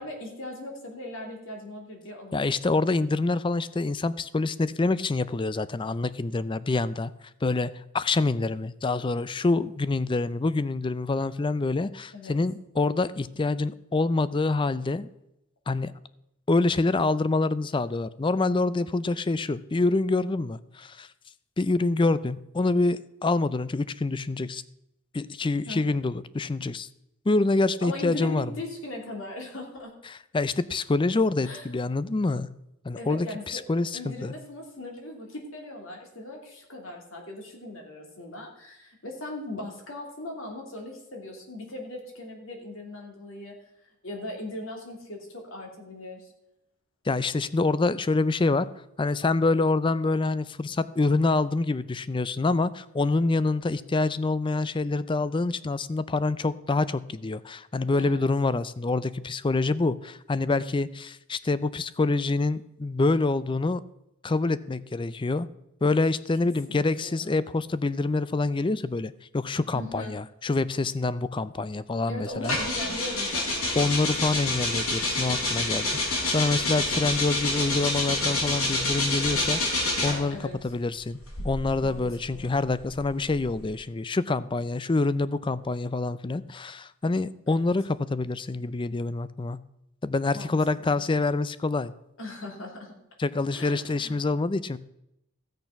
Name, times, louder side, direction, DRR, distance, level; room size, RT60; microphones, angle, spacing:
voice 1, 0.0-2.5 12.1-12.3 25.7-26.0 27.8-29.9 31.4-31.6 33.0-33.6 33.9-43.5 44.0-46.3 58.0-58.2 66.4-67.5 69.7-70.2 72.1-73.8 80.3-80.5 81.8-82.0 82.3-82.6 87.5-87.7 90.3-91.0 92.2-93.0 93.5-94.3, left 1 dB, 65° left, 1 dB, 2.9 m, -39 dB
voice 2, 2.3-7.1 7.4-15.1 15.7-15.9 16.5-21.1 21.6-24.6 25.1-26.9 27.3-28.5 30.3-32.5 32.8-34.3 47.1-48.7 49.0-63.8 64.2-65.5 65.8-72.6 73.7-79.6 80.0-81.2 81.4-89.6 90.0-91.9 93.2-94.8, left 3 dB, 25° left, 16 dB, 0.4 m, -26 dB
sound 1, 72.4-80.3 81.2-83.7, left 2 dB, 85° left, 4.6 m, -28 dB
15.5 x 6.7 x 5.8 m, 0.84 s
head